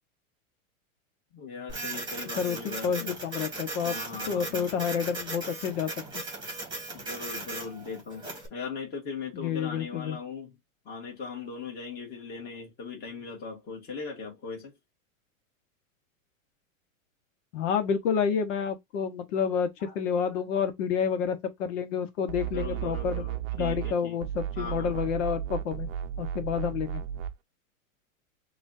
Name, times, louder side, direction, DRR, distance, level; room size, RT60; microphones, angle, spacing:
voice 1, 1.3-3.2 3.8-4.8 6.9-10.5 10.9-14.7 19.8-20.4 22.5-24.2 24.6-25.0, left 5 dB, 25° left, 1.8 m, -39 dB
Printer, 1.7-8.5, right 2 dB, 10° right, 1.3 m, -37 dB
voice 2, 2.4-3.9 4.3-5.9 9.3-10.2 17.5-23.2 23.5-25.9 26.2-27.0, left 7 dB, 60° left, 1.2 m, -29 dB
sound 1, 22.3-24.0 24.2-27.3, right 11 dB, 60° right, 0.7 m, -34 dB
6.0 x 2.5 x 2.6 m
supercardioid pair, 155°, 42 cm